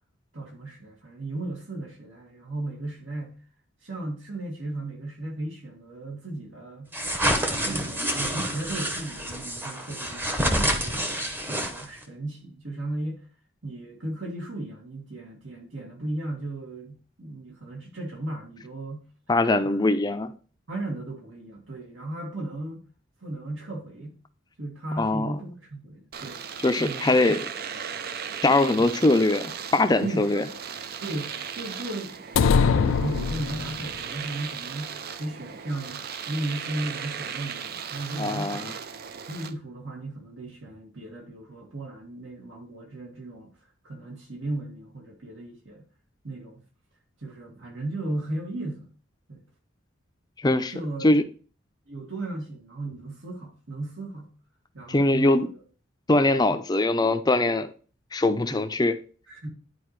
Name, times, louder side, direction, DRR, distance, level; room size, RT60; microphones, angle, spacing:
voice 1, 0.3-3.4 3.8-6.9 7.6-13.2 13.6-19.1 19.6-19.9 20.7-22.8 23.2-24.2 24.6-26.4 26.8-27.1 28.8-28.9 30.0-30.4 31.0-36.0 36.3-38.8 39.3-43.5 43.8-45.8 46.2-46.6 47.2-48.9 49.3-49.4 50.7-51.1 51.9-54.3 54.7-55.5 56.5-56.6 58.5-58.7 59.3-59.5, right 2 dB, 80° right, 2.1 m, -35 dB
sound 1, 6.9-12.0, equal, 10° right, 0.8 m, -28 dB
voice 2, 19.3-20.3 25.0-25.3 26.6-27.4 28.4-30.5 38.1-38.7 50.4-50.7 51.0-51.2 54.9-55.5 56.1-57.7 58.1-59.0, left 2 dB, 20° left, 0.5 m, -22 dB
Domestic sounds home sounds, 26.1-39.5, right 7 dB, 50° right, 0.4 m, -37 dB
sound 2, 32.4-34.0, left 6 dB, 85° left, 0.4 m, -22 dB
10.0 x 4.6 x 3.1 m
head